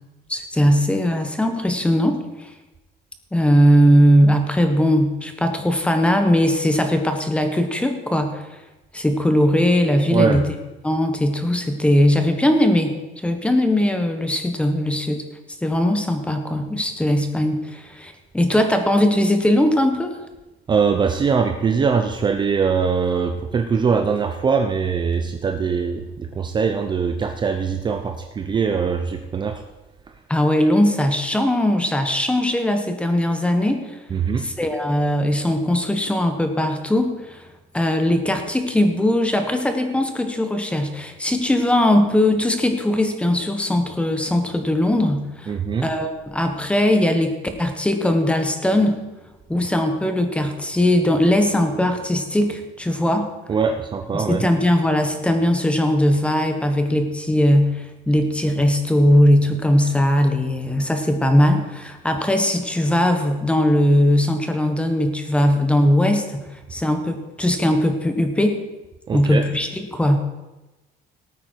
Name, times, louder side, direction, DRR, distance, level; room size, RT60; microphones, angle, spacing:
voice 1, 0.3-2.5 3.3-8.5 8.9-10.5 10.8-12.9 13.2-15.2 15.6-20.2 30.3-34.0 34.4-37.4 37.7-47.3 47.6-49.0 49.5-53.3 54.1-68.6 69.1-70.2, left 1 dB, 5° left, 6 dB, 1.3 m, -19 dB
voice 2, 10.1-10.4 20.7-29.6 34.1-34.5 45.5-45.9 53.5-54.5 69.1-69.5, right 5 dB, 25° right, 6 dB, 0.7 m, -22 dB
18.0 x 8.9 x 4.6 m, 1.1 s
cardioid pair, 155°, 18 cm